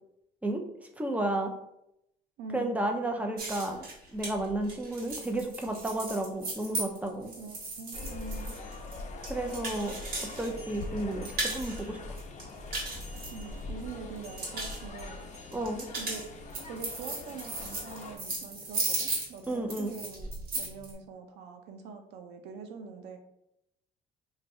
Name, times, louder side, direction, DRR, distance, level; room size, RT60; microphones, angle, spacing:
voice 1, 1.0-1.5 2.5-3.9 4.1-7.3 9.3-9.9 10.4-12.0 15.5-15.9 19.5-19.9, right 1 dB, 10° right, 3 dB, 0.5 m, -32 dB
voice 2, 2.4-2.8 7.4-8.6 13.3-15.3 15.9-16.2 16.6-20.3 20.5-23.2, right 5 dB, 85° right, 6 dB, 0.5 m, -44 dB
sound 1, 3.4-10.5 10.8-11.8 12.2-13.8 14.2-14.8 15.5-20.9, right 2 dB, 65° right, 1.4 m, -36 dB
Park Ambiance, 7.9-18.2, left 2 dB, 45° left, 0.6 m, -42 dB
sound 2, 8.6-12.2 13.0-16.2, right 1 dB, 35° right, 1.4 m, -55 dB
2.6 x 2.4 x 4.0 m, 0.80 s
cardioid pair, 110°, 17 cm